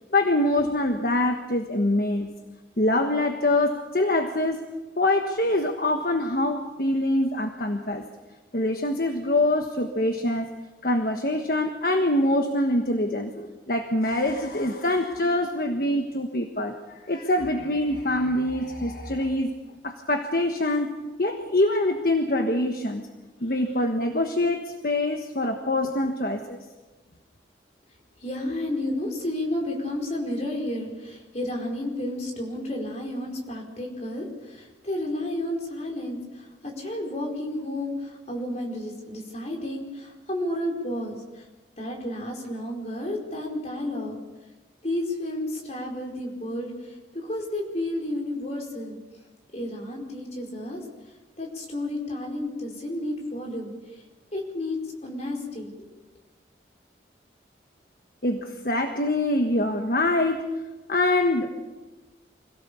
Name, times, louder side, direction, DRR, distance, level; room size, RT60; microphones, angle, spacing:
voice 1, 0.1-2.3 2.8-4.6 5.0-8.0 8.5-10.5 10.8-19.5 19.8-20.9 21.2-23.1 23.4-26.6 58.2-60.5 60.9-61.5, left 1 dB, 55° left, 5 dB, 1.4 m, -24 dB
voice 2, 28.2-41.4 41.8-44.2 44.8-49.0 49.5-50.8 51.4-53.7 54.3-55.8, left 1 dB, 40° left, 0 dB, 4.7 m, -31 dB
25.5 x 17.0 x 7.0 m, 1.2 s
head